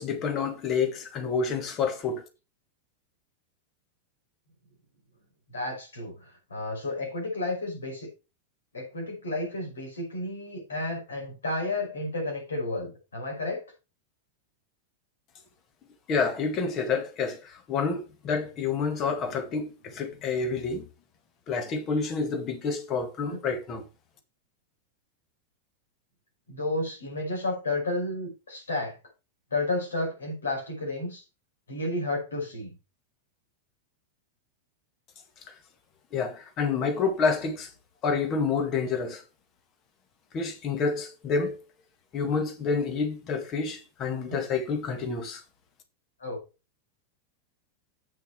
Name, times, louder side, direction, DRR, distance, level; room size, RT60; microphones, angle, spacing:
voice 1, 0.0-2.2 16.1-20.9 21.5-23.8 35.5-35.6 36.1-37.7 38.0-39.2 40.3-41.6 42.1-45.4, left 5 dB, 30° left, 2.0 m, -28 dB
voice 2, 5.5-8.1 8.7-13.6 23.3-23.4 26.5-29.0 29.5-31.2 31.7-32.8 44.3-44.4 46.2-46.4, left 2 dB, 70° left, 5.5 m, -32 dB
8.5 x 6.6 x 4.8 m
figure-of-eight pair, 90°, 0 cm